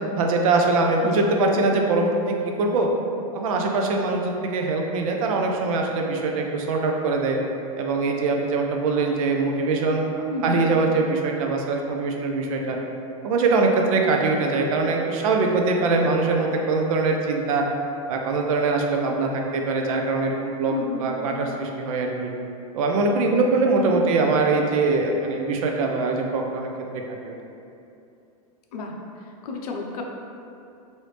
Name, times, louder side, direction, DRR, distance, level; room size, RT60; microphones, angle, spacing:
voice 1, 0.1-2.9 3.3-7.4 7.8-12.8 13.2-17.7 18.1-20.7 21.0-22.3 22.7-26.7 26.9-27.3, right 3 dB, 60° right, 2 dB, 0.5 m, -23 dB
voice 2, 10.3-10.6 20.7-21.1 23.7-24.2 28.7-28.9 29.2-30.0, left 3 dB, 75° left, 1 dB, 0.5 m, -31 dB
3.1 x 2.7 x 3.2 m, 2.7 s
supercardioid pair, 170°, 20 cm